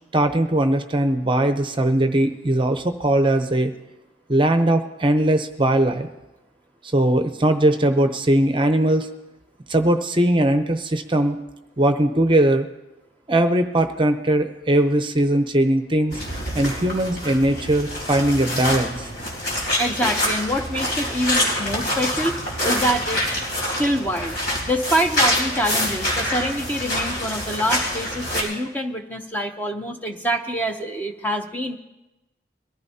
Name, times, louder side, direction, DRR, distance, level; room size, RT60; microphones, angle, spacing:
voice 1, 0.1-3.7 4.3-6.1 6.9-9.1 9.7-11.4 11.8-12.7 13.3-16.2 16.5-19.1, right 1 dB, 25° right, 7 dB, 0.7 m, -20 dB
sound 1, 16.1-28.4, left 1 dB, 60° left, 4.2 m, -26 dB
voice 2, 19.8-23.4 23.8-24.4 24.7-31.8, equal, 10° left, 4 dB, 0.7 m, -25 dB
22.5 x 14.5 x 2.8 m, 1.0 s
head